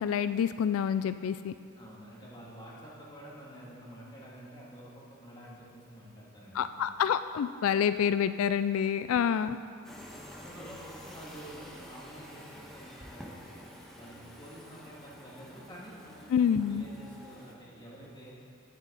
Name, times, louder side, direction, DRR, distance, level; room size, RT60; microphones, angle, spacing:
voice 1, 0.0-1.5 6.5-9.6 16.3-16.9, left 8 dB, 85° left, 13 dB, 0.3 m, -27 dB
voice 2, 1.8-6.8 10.3-13.6 14.0-16.3 16.6-18.3, equal, 20° left, -6 dB, 2.5 m, -49 dB
sound 1, 9.8-17.5, equal, ahead, 1.2 m, -49 dB
19.0 x 7.4 x 4.0 m, 2.5 s
head